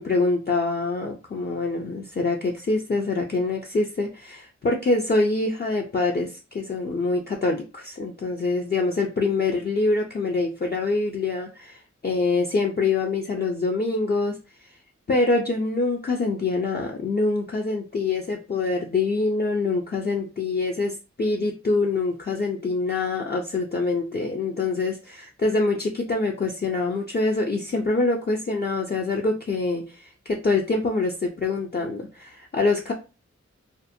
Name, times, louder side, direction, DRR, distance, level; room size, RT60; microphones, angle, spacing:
voice 1, 0.0-14.4 15.1-32.9, left 3 dB, 35° left, 0 dB, 0.4 m, -25 dB
2.5 x 2.1 x 2.5 m, 0.31 s
wide cardioid pair, 55°, 29 cm